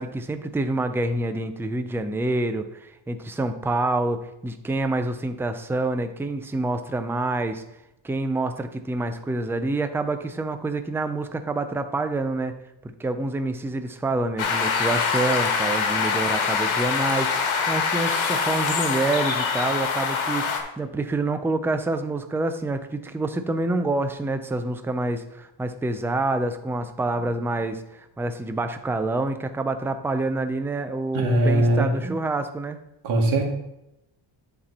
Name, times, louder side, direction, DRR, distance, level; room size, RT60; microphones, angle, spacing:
voice 1, 0.0-7.6 8.0-12.6 13.0-32.8, right 2 dB, 5° right, 8 dB, 0.3 m, -27 dB
sound 1, 14.4-20.6, left 5 dB, 85° left, 1.4 m, -24 dB
voice 2, 31.1-31.9 33.0-33.5, right 1 dB, 75° right, 0 dB, 2.1 m, -20 dB
10.5 x 4.3 x 4.2 m, 0.88 s
wide cardioid pair, 170°, 47 cm